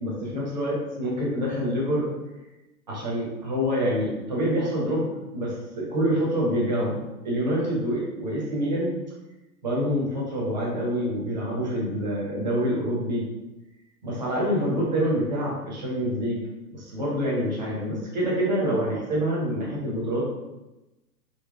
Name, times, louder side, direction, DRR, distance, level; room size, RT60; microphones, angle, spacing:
voice 1, 0.0-2.1 2.9-5.1 5.3-7.0 7.2-9.0 9.6-13.2 14.0-16.4 16.7-20.2, equal, 25° right, -6 dB, 1.0 m, -26 dB
3.5 x 2.9 x 3.6 m, 1.0 s
hypercardioid pair, 180°, 50 cm